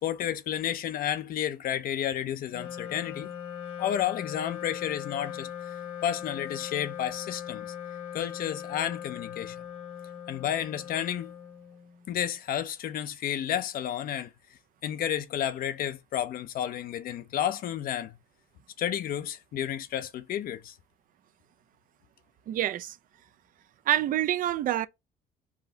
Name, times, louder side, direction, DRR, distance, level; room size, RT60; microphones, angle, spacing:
voice 1, 0.0-3.3 3.8-5.5 6.0-7.7 8.1-9.6 10.3-11.3 12.1-14.3 14.8-18.2 18.8-20.8, left 10 dB, 60° left, 0.5 m, -31 dB
Wind instrument woodwind instrument, 2.5-12.1, left 9 dB, 85° left, 2.1 m, -40 dB
voice 2, 22.5-23.0 23.9-24.9, right 13 dB, 55° right, 0.4 m, -27 dB
4.9 x 2.6 x 3.9 m
cardioid pair, 110°, 17 cm